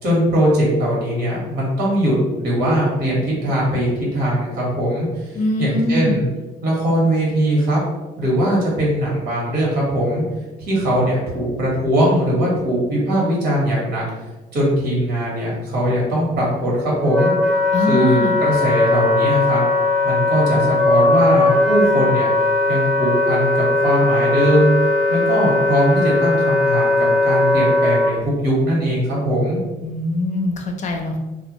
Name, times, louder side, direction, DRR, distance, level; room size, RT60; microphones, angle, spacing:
voice 1, 0.0-5.3 5.6-6.3 6.6-7.8 8.2-10.2 10.6-14.0 14.5-17.3 17.9-19.6 20.0-22.3 22.7-24.7 25.1-29.6, equal, 80° right, -4 dB, 1.2 m, -20 dB
voice 2, 5.3-6.2 17.7-18.4 29.8-31.2, left 1 dB, 45° left, 4 dB, 0.4 m, -22 dB
Wind instrument woodwind instrument, 16.5-28.1, left 2 dB, 5° left, 0.7 m, -18 dB
2.3 x 2.2 x 2.8 m, 1.1 s
cardioid pair, 110°, 17 cm